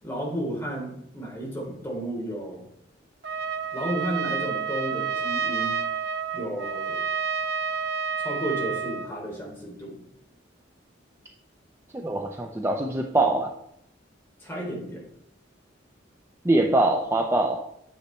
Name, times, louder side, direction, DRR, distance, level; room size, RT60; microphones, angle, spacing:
voice 1, 0.0-2.6 3.7-5.8 6.3-7.0 8.2-10.0 14.4-15.0, right 1 dB, 10° left, -3 dB, 3.3 m, -33 dB
Trumpet, 3.2-9.1, right 6 dB, 60° right, 0.7 m, -29 dB
voice 2, 11.9-13.5 16.4-17.6, right 2 dB, 15° right, 2 dB, 0.6 m, -23 dB
9.8 x 7.2 x 4.4 m, 0.76 s
head